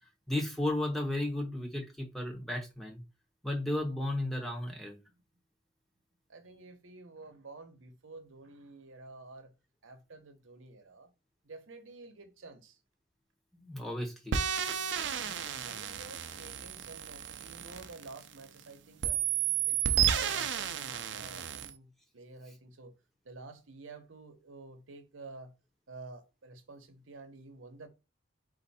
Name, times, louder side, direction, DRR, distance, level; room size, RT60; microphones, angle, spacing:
voice 1, 0.3-3.0 3.4-5.0 13.5-14.3, left 1 dB, ahead, 0.8 m, -34 dB
voice 2, 6.3-9.5 9.8-11.1 11.4-12.8 15.2-19.2 19.7-22.9 23.2-25.5 25.9-27.9, right 3 dB, 85° right, 0.8 m, -50 dB
sound 1, 14.3-18.6 19.0-21.7, right 9 dB, 65° right, 0.5 m, -32 dB
4.4 x 2.5 x 4.1 m
head